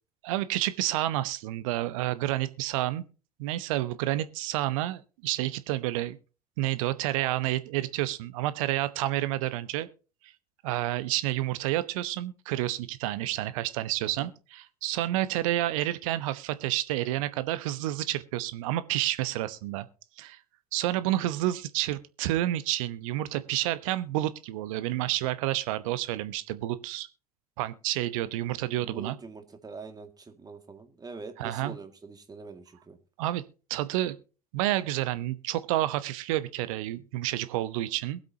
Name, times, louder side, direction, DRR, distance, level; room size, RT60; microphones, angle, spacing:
voice 1, 0.2-3.0 3.4-6.2 6.6-9.9 10.6-19.9 20.2-20.4 20.7-27.1 27.6-29.2 31.4-31.8 33.2-33.4 33.7-34.2 34.5-38.2, right 15 dB, 60° right, 1.0 m, -29 dB
voice 2, 28.6-33.0, right 4 dB, 20° right, 2.1 m, -44 dB
22.0 x 7.9 x 2.8 m
figure-of-eight pair, 65°, 19 cm